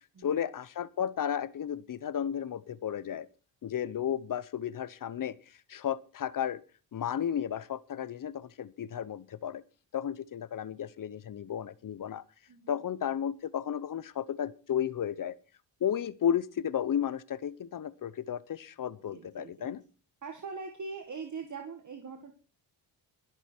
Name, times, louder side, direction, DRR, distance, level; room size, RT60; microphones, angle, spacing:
voice 1, 0.2-3.3 3.6-5.4 5.7-6.6 6.9-9.6 9.9-12.2 12.7-15.4 15.8-19.8, left 9 dB, 45° left, 19 dB, 0.9 m, -33 dB
voice 2, 12.5-12.8 19.1-19.7 20.2-22.3, right 5 dB, 40° right, 5 dB, 1.9 m, -42 dB
22.0 x 8.0 x 4.5 m, 0.36 s
cardioid pair, 90°, 43 cm